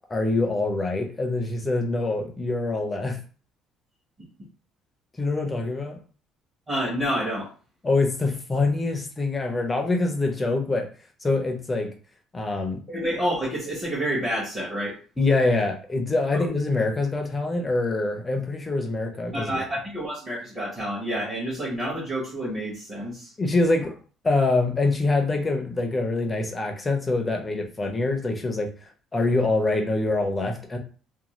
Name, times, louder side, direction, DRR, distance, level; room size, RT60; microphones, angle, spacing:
voice 1, 0.1-3.2 5.2-6.0 7.8-10.9 11.2-11.9 12.3-12.8 15.2-19.5 23.4-23.9 24.2-28.7 29.1-30.8, left 2 dB, 15° left, 3 dB, 0.5 m, -25 dB
voice 2, 6.7-7.5 12.9-15.0 19.3-23.3, equal, 20° right, -7 dB, 0.9 m, -28 dB
2.5 x 2.2 x 3.0 m, 0.38 s
cardioid pair, 175°, 0 cm